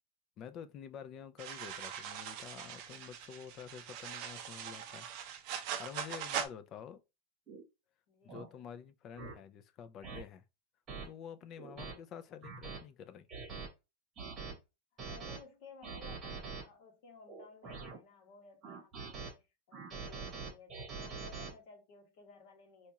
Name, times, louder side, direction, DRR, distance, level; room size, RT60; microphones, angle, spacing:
voice 1, 0.4-5.1 5.8-7.0 8.2-10.4 11.0-13.3, left 8 dB, 30° left, 0.3 m, -48 dB
sound 1, 1.4-6.5, right 9 dB, 45° right, 0.5 m, -41 dB
sound 2, 7.5-7.6 8.3-8.5 9.2-9.3 10.0-10.2 10.9-11.0 11.6-11.9 12.4-12.8 13.3-13.7 14.2-14.5 15.0-15.4 15.8-16.6 17.3-18.0 18.6-19.3 19.7-21.5, right 4 dB, 20° right, 1.0 m, -44 dB
voice 2, 8.1-8.6 11.7-12.0 14.9-22.9, left 4 dB, 50° left, 1.3 m, -57 dB
4.1 x 2.3 x 2.8 m
supercardioid pair, 175°, 0 cm